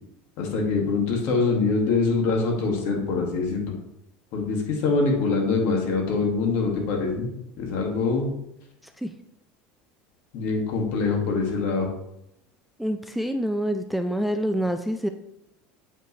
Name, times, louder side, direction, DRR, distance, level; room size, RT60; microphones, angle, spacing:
voice 1, 0.4-3.7 4.3-7.3 7.6-8.3 10.3-11.9, left 4 dB, 60° left, 1 dB, 2.0 m, -24 dB
voice 2, 12.8-15.1, equal, ahead, 6 dB, 0.3 m, -26 dB
7.5 x 5.7 x 3.2 m, 0.82 s
supercardioid pair, 140°, 4 cm